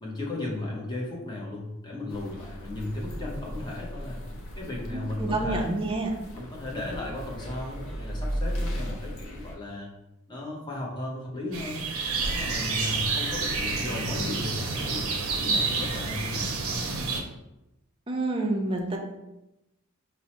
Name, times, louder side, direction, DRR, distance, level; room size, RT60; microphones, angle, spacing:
voice 1, 0.0-4.2 4.5-5.8 6.4-9.9 10.3-11.9 12.2-15.0 15.4-16.4, left 2 dB, 20° left, -3 dB, 0.7 m, -35 dB
sound 1, 2.1-9.6, equal, 65° left, 0.5 m, -36 dB
voice 2, 4.9-6.1 18.1-19.0, right 2 dB, 25° right, 0 dB, 0.5 m, -28 dB
sound 2, 11.5-17.2, right 4 dB, 75° right, 0.5 m, -29 dB
4.4 x 2.0 x 2.9 m, 0.93 s
head